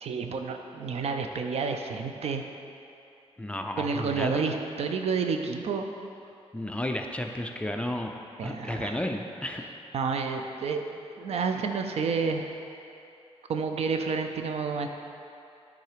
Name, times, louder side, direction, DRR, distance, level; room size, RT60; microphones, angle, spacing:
voice 1, 0.0-2.5 3.8-5.9 8.4-9.0 9.9-10.8 11.2-12.5 13.5-14.9, right 5 dB, 70° right, 5 dB, 0.5 m, -30 dB
voice 2, 3.4-4.5 6.5-8.1 8.4-9.6, left 1 dB, 10° left, 3 dB, 0.4 m, -32 dB
9.4 x 3.9 x 4.9 m, 2.8 s
wide cardioid pair, 140°, 11 cm